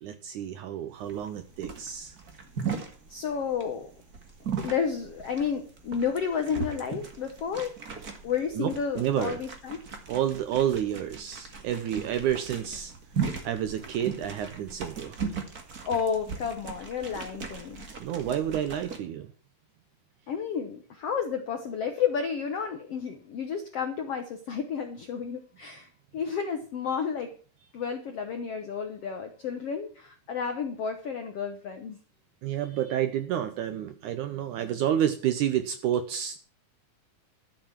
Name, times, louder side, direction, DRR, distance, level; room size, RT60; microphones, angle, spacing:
voice 1, 0.0-2.1 8.5-9.4 10.1-12.9 13.4-15.2 18.0-19.3 32.4-36.4, right 10 dB, 75° right, 10 dB, 1.9 m, -29 dB
sound 1, 1.0-19.0, right 6 dB, 35° right, 1.5 m, -38 dB
voice 2, 3.1-3.9 4.6-7.7 8.2-9.8 15.8-17.9 20.3-27.3 27.7-32.0, left 6 dB, 70° left, 6 dB, 1.4 m, -31 dB
12.5 x 7.4 x 7.4 m, 0.41 s
omnidirectional pair, 4.4 m